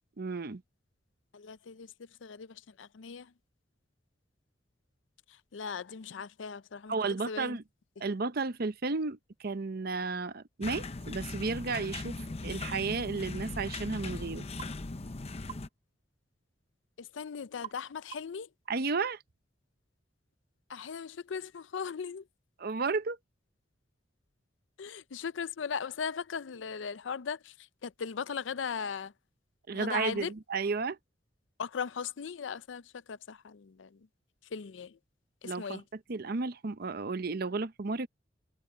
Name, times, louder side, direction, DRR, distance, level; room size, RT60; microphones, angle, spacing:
voice 1, 0.2-0.6 6.9-7.6 8.0-12.1 12.4-14.5 18.7-19.2 22.6-23.2 29.7-31.0 35.4-35.8 36.1-38.1, right 4 dB, 55° right, 0.7 m, -33 dB
voice 2, 1.3-1.9 2.2-3.3 5.3-6.9 7.3-7.6 17.0-18.5 20.7-22.3 24.8-29.1 29.7-30.3 31.6-34.1 34.5-35.0 35.4-35.8, left 6 dB, 85° left, 0.5 m, -38 dB
sound 1, 10.6-15.7, left 2 dB, 35° left, 0.7 m, -39 dB
sound 2, 14.6-14.8 15.5-15.7 17.6-17.9 18.1-18.4, right 10 dB, 35° right, 2.1 m, -44 dB
head